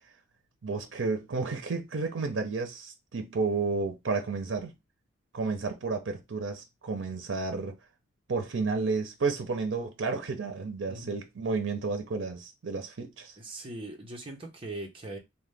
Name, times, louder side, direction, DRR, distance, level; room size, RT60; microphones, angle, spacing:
voice 1, 0.6-4.7 5.3-7.8 8.3-13.3, right 4 dB, 80° right, 0.5 m, -31 dB
voice 2, 13.4-15.2, right 2 dB, 30° right, 0.8 m, -40 dB
2.8 x 2.2 x 3.3 m
head